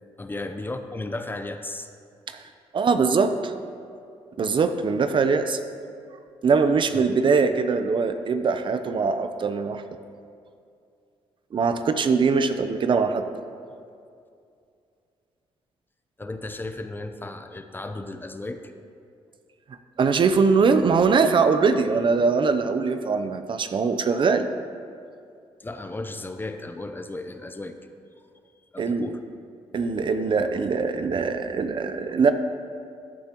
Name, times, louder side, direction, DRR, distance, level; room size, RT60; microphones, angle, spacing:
voice 1, 0.2-1.9 16.2-18.6 25.6-27.8 28.7-29.2 29.7-29.9, left 2 dB, 20° left, 7 dB, 0.6 m, -34 dB
voice 2, 2.7-3.5 4.4-5.6 6.4-9.8 11.5-13.2 20.0-24.5 28.8-29.1 29.7-32.3, right 5 dB, 50° right, 9 dB, 0.6 m, -22 dB
14.0 x 8.5 x 3.0 m, 2.4 s
cardioid pair, 75°, 11 cm